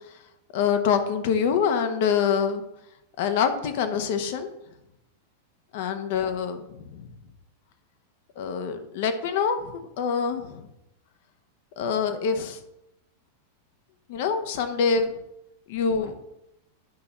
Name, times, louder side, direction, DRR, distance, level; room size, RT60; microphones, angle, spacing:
voice 1, 0.5-2.6 3.2-4.5 5.7-7.1 8.4-10.6 11.8-12.6 14.1-15.2 15.7-16.1, left 6 dB, 60° left, 8 dB, 1.2 m, -25 dB
10.5 x 5.7 x 4.3 m, 0.87 s
hypercardioid pair, 100°, 0 cm